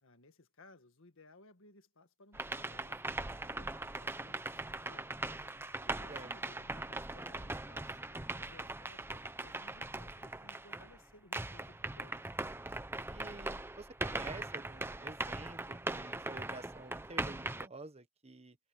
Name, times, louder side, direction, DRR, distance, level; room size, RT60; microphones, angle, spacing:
voice 1, 0.0-5.1 5.9-12.3, left 2 dB, 65° left, 1.8 m, -61 dB
sound 1, 2.3-11.0 11.3-17.7, right 2 dB, 10° right, 0.8 m, -40 dB
voice 2, 13.1-18.6, right 3 dB, 30° right, 1.4 m, -49 dB
head